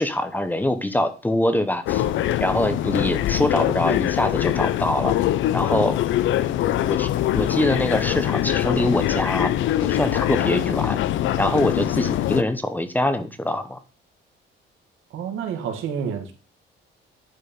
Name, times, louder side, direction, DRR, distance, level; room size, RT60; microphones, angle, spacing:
voice 1, 0.0-2.0 2.4-5.2 5.5-6.0 6.8-9.5 9.8-11.0 11.4-13.8, left 1 dB, 10° left, 0.8 m, -24 dB
sound 1, 1.9-12.4, left 13 dB, 70° left, 0.6 m, -23 dB
voice 2, 15.1-16.3, right 7 dB, 80° right, 1.9 m, -29 dB
10.0 x 4.5 x 5.3 m
cardioid pair, 145°, 20 cm